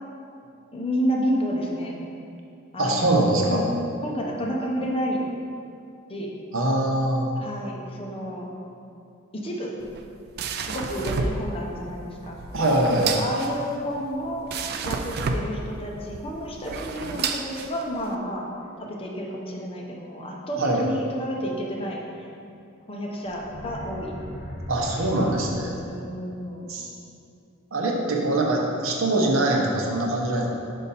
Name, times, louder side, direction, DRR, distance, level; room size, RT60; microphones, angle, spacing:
voice 1, 0.7-2.0 2.7-3.7 4.0-5.2 6.1-6.3 7.4-8.5 9.3-9.7 10.7-12.4 13.2-14.5 14.8-18.5 18.8-22.3 22.9-24.2 25.0-25.3 25.7-26.7, equal, 30° left, -2 dB, 0.7 m, -30 dB
voice 2, 2.8-3.6 6.5-7.3 12.5-13.1 20.5-20.8 24.7-25.8 26.7-26.9 27.7-30.5, right 1 dB, 70° right, -1 dB, 0.9 m, -23 dB
sound 1, 9.8-18.1, right 4 dB, 50° right, 0.4 m, -31 dB
sound 2, 23.3-26.1, equal, 45° left, 1.4 m, -37 dB
5.6 x 5.1 x 4.1 m, 2.6 s
head